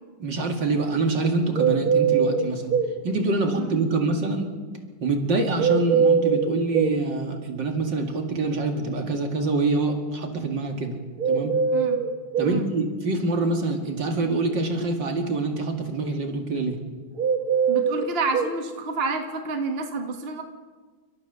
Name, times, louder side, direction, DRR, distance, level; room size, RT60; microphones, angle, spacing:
voice 1, 0.2-2.8 3.0-4.5 5.0-11.0 11.3-11.6 12.4-16.8, right 3 dB, 60° right, 3 dB, 2.8 m, -25 dB
sound 1, 1.5-3.0 5.6-7.0 11.2-12.6 17.2-18.5, right 6 dB, 80° right, 3.0 m, -22 dB
voice 2, 17.7-20.4, right 3 dB, 30° right, 4 dB, 1.5 m, -29 dB
29.5 x 13.0 x 6.8 m, 1.4 s
omnidirectional pair, 2.3 m